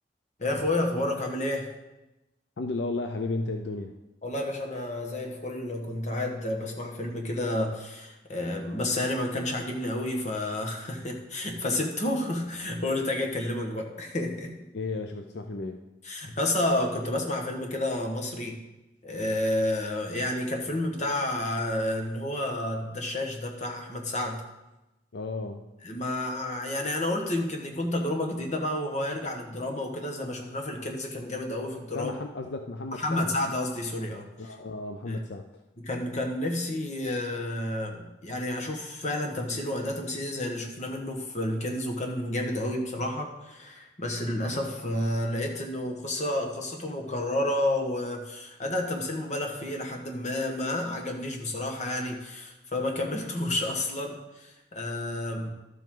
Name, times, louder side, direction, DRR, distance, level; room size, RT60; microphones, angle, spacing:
voice 1, 0.4-1.7 4.2-14.5 16.0-18.6 19.0-24.4 25.8-32.1 33.0-34.3 35.1-35.2 35.8-55.5, left 1 dB, 40° left, 2 dB, 1.5 m, -30 dB
voice 2, 2.6-3.9 14.7-15.8 25.1-25.6 31.9-33.3 34.4-35.5, left 3 dB, 70° left, 5 dB, 0.5 m, -33 dB
12.5 x 7.6 x 3.8 m, 1.0 s
head